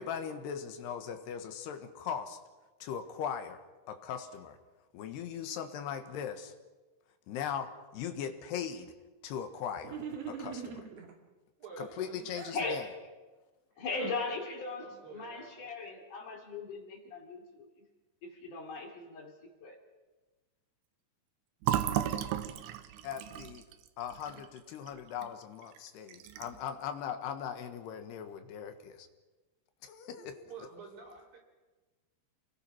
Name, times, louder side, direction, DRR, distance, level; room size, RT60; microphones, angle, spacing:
voice 1, 0.0-2.4 2.8-3.6 3.9-4.6 4.9-6.5 7.3-8.9 9.2-10.0 10.3-10.8 12.0-12.9 23.0-23.6 24.0-29.1 29.8-30.3, left 8 dB, 85° left, 8 dB, 3.5 m, -39 dB
sound 1, 9.8-11.2 11.8-12.6, right 6 dB, 45° right, 2.7 m, -42 dB
voice 2, 11.6-12.3 13.7-14.2 14.8-15.7 30.0-31.4, right 5 dB, 60° right, -1 dB, 5.7 m, -50 dB
voice 3, 12.5-13.0 13.8-17.7 18.2-19.8, left 3 dB, 55° left, 2 dB, 4.1 m, -39 dB
Fill (with liquid), 21.6-25.3 25.6-25.8 26.1-26.7, right 11 dB, 80° right, 2.9 m, -34 dB
28.5 x 21.0 x 6.0 m, 1.2 s
omnidirectional pair, 4.7 m